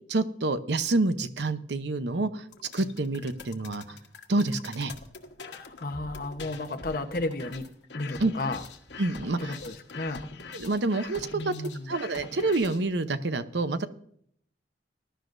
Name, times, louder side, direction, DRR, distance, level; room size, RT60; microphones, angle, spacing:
voice 1, 0.1-2.4 2.7-4.0 4.3-4.9 8.2-8.3 9.0-9.5 10.5-11.5 11.9-13.9, right 2 dB, 80° right, 11 dB, 0.8 m, -27 dB
sound 1, 2.5-12.9, left 4 dB, 90° left, 1.4 m, -44 dB
voice 2, 5.4-7.7 7.9-8.6 9.4-10.2 11.3-11.9, left 2 dB, 50° left, 6 dB, 1.0 m, -33 dB
20.5 x 11.5 x 2.6 m, 0.67 s
head